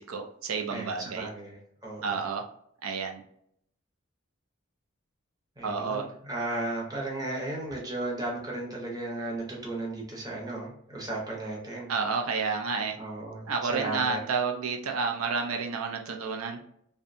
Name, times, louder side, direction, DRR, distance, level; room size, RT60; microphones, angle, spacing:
voice 1, 0.0-1.3 2.0-2.4 2.8-3.2 5.6-6.1 11.9-13.0 13.5-16.6, right 5 dB, 90° right, 3 dB, 0.5 m, -30 dB
voice 2, 0.7-1.6 1.8-2.2 5.6-11.9 13.0-14.2, right 2 dB, 20° right, -3 dB, 0.7 m, -35 dB
2.6 x 2.1 x 2.5 m, 0.69 s
head